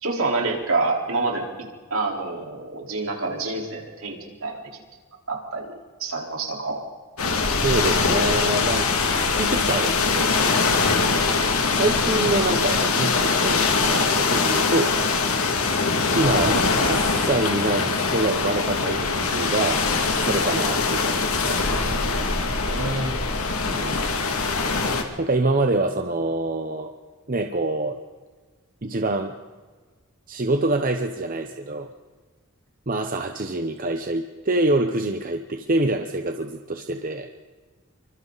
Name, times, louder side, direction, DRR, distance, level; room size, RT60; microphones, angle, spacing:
voice 1, 0.0-1.5 1.9-4.6 5.3-5.7 6.0-6.8 22.6-23.3, right 3 dB, 75° right, 0 dB, 4.3 m, -27 dB
sound 1, 7.2-25.0, left 4 dB, 80° left, 2.4 m, -22 dB
voice 2, 7.6-8.9 9.4-10.3 11.7-15.0 15.6-19.8 20.2-21.6 23.7-24.0 25.2-26.9 27.3-28.0 28.8-29.3 30.3-31.9 32.9-37.3, right 2 dB, 40° right, 5 dB, 1.0 m, -25 dB
27.0 x 24.5 x 4.1 m, 1.4 s
head